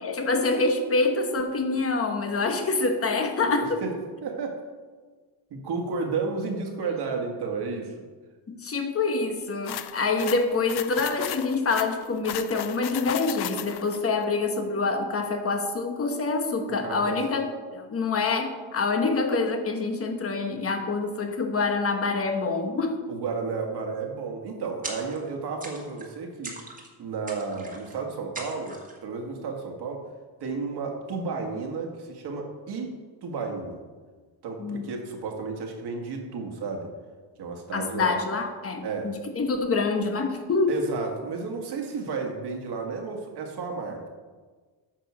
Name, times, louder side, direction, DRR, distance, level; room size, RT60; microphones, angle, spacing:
voice 1, 0.0-3.8 8.5-23.0 34.6-34.8 37.7-40.8, left 3 dB, 30° left, 6 dB, 1.1 m, -26 dB
voice 2, 3.8-4.6 5.5-8.0 16.8-17.2 23.1-26.6 27.0-30.0 30.4-32.9 33.2-33.8 34.4-36.9 37.4-38.2 38.8-39.1 39.6-39.7 40.7-44.1, right 4 dB, 60° right, 2 dB, 1.9 m, -32 dB
sound 1, 9.7-14.0, left 12 dB, 60° left, 0.6 m, -35 dB
sound 2, 24.8-25.3 25.6-26.1 26.4-26.9 27.3-27.9 28.3-29.0, right 2 dB, 20° right, 1.6 m, -39 dB
9.2 x 6.0 x 6.3 m, 1.4 s
cardioid pair, 130°, 45 cm